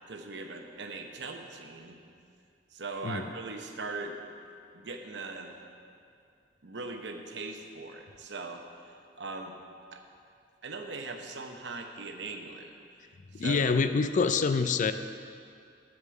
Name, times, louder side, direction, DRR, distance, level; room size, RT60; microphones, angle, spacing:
voice 1, 0.1-2.0 2.7-4.2 4.7-5.6 6.6-9.6 9.9-10.0 10.6-12.7 13.3-13.7, right 3 dB, 75° right, 4 dB, 0.9 m, -40 dB
voice 2, 13.3-14.9, left 4 dB, 45° left, 10 dB, 0.4 m, -26 dB
8.0 x 7.3 x 6.4 m, 2.3 s
head